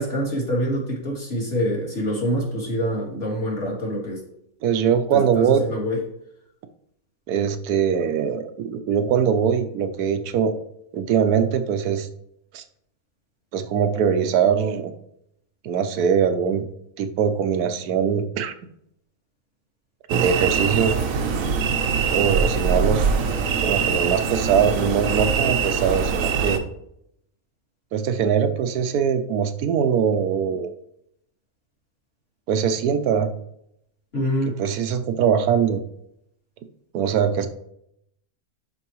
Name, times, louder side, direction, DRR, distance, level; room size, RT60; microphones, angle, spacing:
voice 1, 0.0-4.2 5.1-6.0 34.1-34.6, equal, 40° left, -4 dB, 2.8 m, -25 dB
voice 2, 4.6-5.7 7.3-10.5 10.9-12.1 12.5-12.6 13.5-14.9 15.6-16.6 17.0-18.5 20.1-21.0 22.1-23.1 23.6-26.6 27.9-30.7 32.5-33.3 34.6-35.8 36.9-37.5, right 7 dB, 85° right, 9 dB, 1.2 m, -22 dB
sound 1, 20.1-26.6, right 6 dB, 65° right, 1.1 m, -23 dB
11.5 x 4.6 x 3.1 m, 0.76 s
omnidirectional pair, 1.6 m